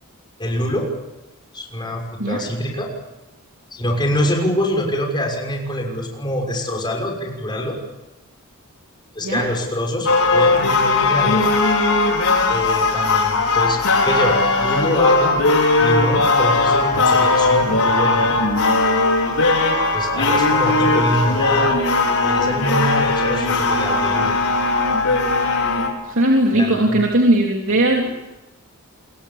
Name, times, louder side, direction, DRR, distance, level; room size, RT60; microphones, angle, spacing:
voice 1, 0.4-0.9 1.5-2.9 3.7-7.8 9.1-11.5 12.5-15.5 15.8-18.4 19.9-21.8 22.2-24.4 26.5-27.0, equal, 20° left, 1 dB, 6.2 m, -25 dB
sound 1, 10.1-25.9, left 3 dB, 85° left, 5.5 m, -18 dB
voice 2, 26.0-28.1, right 1 dB, 60° right, 0 dB, 3.3 m, -18 dB
27.0 x 23.0 x 7.3 m, 1.0 s
head